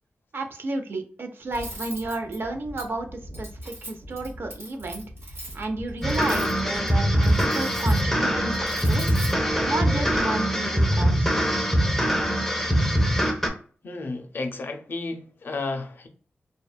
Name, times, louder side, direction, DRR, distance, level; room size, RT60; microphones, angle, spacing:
voice 1, 0.3-11.4, right 2 dB, 65° right, 0.5 m, -32 dB
Cutlery silverware, 1.5-10.2, right 1 dB, 85° right, 1.0 m, -40 dB
sound 1, 6.0-13.5, equal, 5° left, 0.5 m, -23 dB
voice 2, 13.8-16.1, left 3 dB, 60° left, 0.5 m, -32 dB
2.6 x 2.3 x 2.2 m
wide cardioid pair, 75°, 4 cm